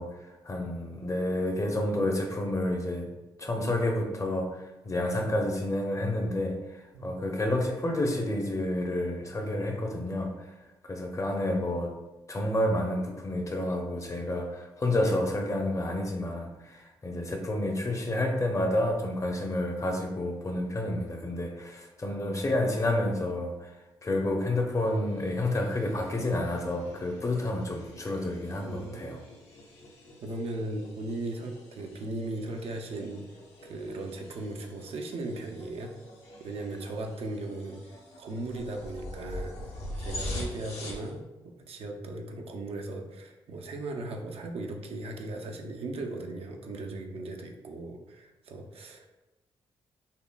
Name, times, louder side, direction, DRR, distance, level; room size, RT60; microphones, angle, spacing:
voice 1, 0.0-3.1 3.4-10.5 10.8-11.9 12.3-23.8 24.0-29.2, left 1 dB, 30° left, 2 dB, 0.6 m, -30 dB
sound 1, 24.8-41.1, left 1 dB, 75° left, 0.9 m, -44 dB
voice 2, 28.6-29.2 30.2-33.2 33.6-35.9 36.4-39.6 40.0-49.1, right 2 dB, 65° right, 3 dB, 0.5 m, -37 dB
5.5 x 2.1 x 2.2 m, 1.0 s
supercardioid pair, 60°, 11 cm